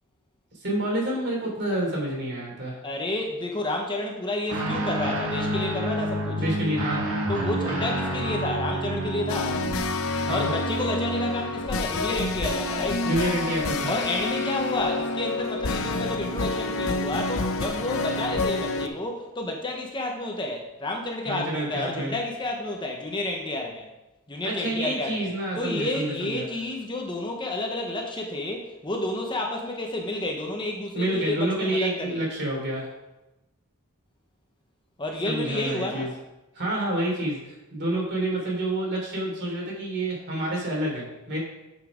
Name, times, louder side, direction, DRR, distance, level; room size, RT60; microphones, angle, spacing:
voice 1, 0.6-2.8 6.4-7.0 10.3-10.5 13.0-13.9 21.2-22.1 24.4-26.4 30.9-32.9 35.2-36.1 36.5-41.4, right 1 dB, 50° right, -2 dB, 3.1 m, -28 dB
voice 2, 2.8-6.4 7.3-9.6 10.3-13.0 13.9-23.9 24.3-25.3 25.6-32.2 35.0-36.1, left 2 dB, 20° left, 2 dB, 0.8 m, -30 dB
Guitar, 4.5-12.2, right 1 dB, 70° right, 1.8 m, -30 dB
sound 1, 9.3-18.9, left 3 dB, 65° left, 0.7 m, -28 dB
7.3 x 6.4 x 5.0 m, 1.0 s
head